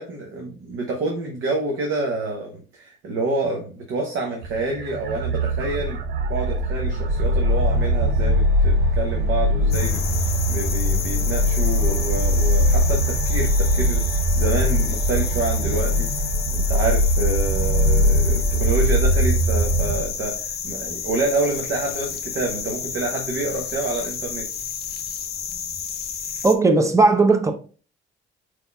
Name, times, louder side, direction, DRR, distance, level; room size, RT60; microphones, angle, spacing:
voice 1, 0.0-6.0 6.3-16.1 16.5-24.5, right 2 dB, 80° right, 0.9 m, -28 dB
sound 1, 4.4-20.0, equal, 55° right, 0.6 m, -21 dB
sound 2, 9.7-26.6, left 7 dB, 55° left, 0.6 m, -30 dB
voice 2, 26.4-27.5, right 3 dB, 15° right, 0.7 m, -16 dB
4.6 x 3.9 x 2.3 m
cardioid pair, 90°, 20 cm